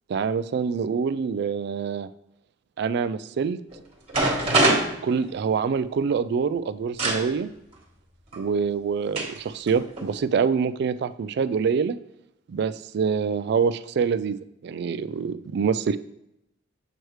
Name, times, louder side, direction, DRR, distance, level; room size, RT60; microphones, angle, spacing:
voice 1, 0.1-2.1 2.8-3.6 5.0-7.5 8.3-12.0 12.5-14.4 14.6-16.0, right 6 dB, 55° right, 14 dB, 0.3 m, -25 dB
sound 1, 3.7-3.8 4.1-5.7 7.0-7.2 8.3-8.4 9.1-9.4 9.7-10.1, right 2 dB, 30° right, 1.4 m, -23 dB
7.8 x 4.6 x 3.2 m, 0.84 s
head